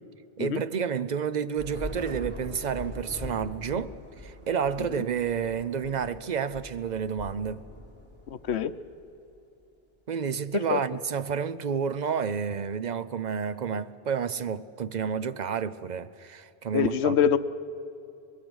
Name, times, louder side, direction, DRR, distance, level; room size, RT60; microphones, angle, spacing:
voice 1, 0.4-4.0 4.2-7.6 10.1-17.2, right 7 dB, 45° right, 0.7 m, -30 dB
Thunder / Rain, 1.6-9.1, left 1 dB, 10° left, 4.1 m, -42 dB
voice 2, 16.7-17.4, left 8 dB, 90° left, 1.0 m, -24 dB
24.5 x 21.5 x 6.3 m
omnidirectional pair, 1.1 m